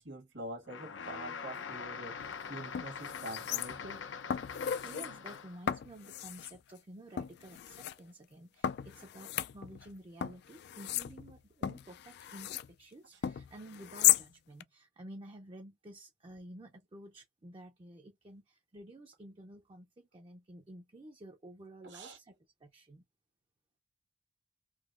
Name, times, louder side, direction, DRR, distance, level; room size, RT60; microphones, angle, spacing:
voice 1, 0.0-4.0 21.8-22.2, right 1 dB, 70° right, 1.3 m, -45 dB
sound 1, 0.7-5.6, left 6 dB, 85° left, 0.7 m, -43 dB
sound 2, 2.2-2.3 2.7-4.0 4.3-5.1 5.7-6.6 7.2-7.9 8.6-9.9 10.2-12.7 13.2-14.3 14.6-14.7, left 12 dB, 60° left, 0.3 m, -34 dB
voice 2, 4.8-22.3 22.6-23.0, right 1 dB, 30° right, 0.5 m, -51 dB
3.8 x 2.8 x 2.5 m
head